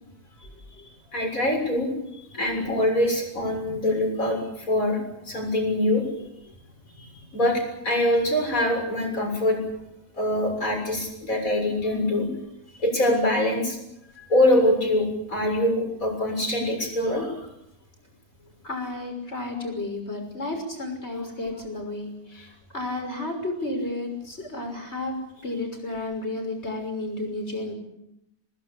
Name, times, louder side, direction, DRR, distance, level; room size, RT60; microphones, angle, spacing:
voice 1, 1.1-5.0 5.2-6.3 7.0-9.6 10.2-12.3 12.8-13.8 14.2-17.5, left 1 dB, 60° left, 3 dB, 7.3 m, -24 dB
voice 2, 18.6-25.2 25.4-27.7, left 2 dB, 45° left, 4 dB, 6.5 m, -32 dB
27.0 x 19.0 x 8.5 m, 0.85 s
omnidirectional pair, 1.6 m